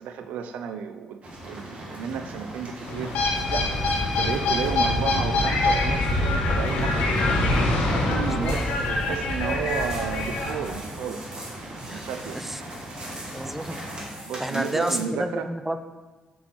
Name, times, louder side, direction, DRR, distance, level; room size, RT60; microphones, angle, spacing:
voice 1, 0.0-3.7 4.0-7.1 7.9-11.2 11.9-12.4 14.3-15.5, right 7 dB, 90° right, 9 dB, 0.4 m, -33 dB
sound 1, 1.2-14.0, right 1 dB, 55° right, 1.7 m, -39 dB
sound 2, 2.9-10.7, left 2 dB, 90° left, 1.0 m, -24 dB
voice 2, 8.2-8.6 9.0-9.2 11.8-12.1 12.3-12.6 13.3-13.9 14.4-15.8, right 1 dB, 10° right, 9 dB, 0.4 m, -30 dB
sound 3, 8.4-15.0, right 1 dB, 30° right, 1.8 m, -42 dB
5.9 x 4.6 x 4.2 m, 1.2 s
cardioid pair, 70°, 3 cm